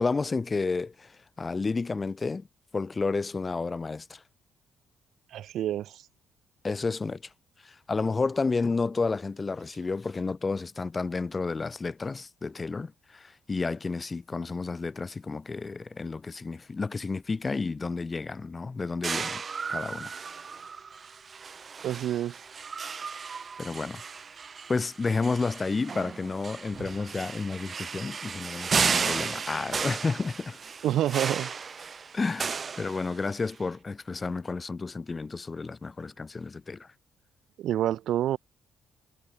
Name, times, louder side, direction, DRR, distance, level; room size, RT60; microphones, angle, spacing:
voice 1, 0.0-2.5 2.7-4.2 6.6-7.3 7.6-19.4 19.7-20.1 23.6-24.0 24.7-30.6 32.1-36.9, left 4 dB, 20° left, 3.3 m, -31 dB
voice 2, 5.3-6.0 21.8-22.4 30.8-31.5 37.6-38.4, right 12 dB, 65° right, 2.8 m, -28 dB
sound 1, 19.0-33.5, right 5 dB, 30° right, 3.8 m, -34 dB
cardioid pair, 135°, 0 cm